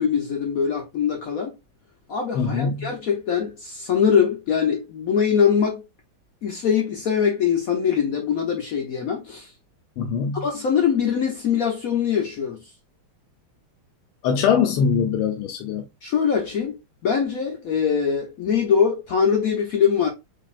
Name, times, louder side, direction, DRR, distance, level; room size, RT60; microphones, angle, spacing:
voice 1, 0.0-1.5 2.1-5.8 6.4-9.5 10.4-12.6 16.0-20.1, left 7 dB, 65° left, 0.8 m, -22 dB
voice 2, 2.3-2.9 10.0-10.5 14.2-15.9, left 6 dB, 85° left, 1.5 m, -22 dB
5.1 x 2.7 x 2.4 m
omnidirectional pair, 2.3 m